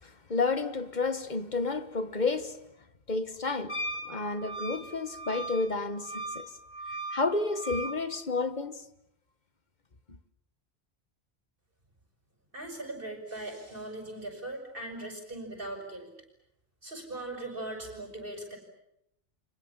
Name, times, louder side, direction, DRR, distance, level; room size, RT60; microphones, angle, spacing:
voice 1, 0.3-2.6 3.1-3.8 4.0-6.5 7.1-8.8, left 3 dB, 45° left, 1.5 m, -30 dB
Wind instrument woodwind instrument, 3.7-8.0, right 1 dB, 80° left, 4.2 m, -38 dB
voice 2, 12.5-16.1 16.8-18.6, right 2 dB, 55° right, 6.5 m, -39 dB
29.5 x 25.0 x 7.4 m
omnidirectional pair, 1.1 m